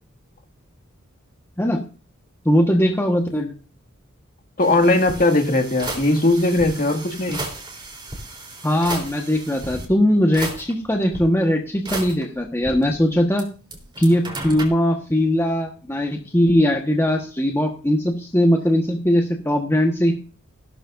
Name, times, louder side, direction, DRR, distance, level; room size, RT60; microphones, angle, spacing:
voice 1, 2.4-3.5 8.6-13.5 14.0-20.1, equal, 10° left, 1 dB, 1.4 m, -20 dB
voice 2, 4.6-7.4, left 2 dB, 40° left, 3 dB, 2.1 m, -19 dB
sound 1, 4.6-9.9 10.3-11.2 11.9-13.4 13.7-14.7, right 2 dB, 20° right, 3.7 m, -34 dB
16.0 x 12.5 x 2.6 m, 0.35 s
head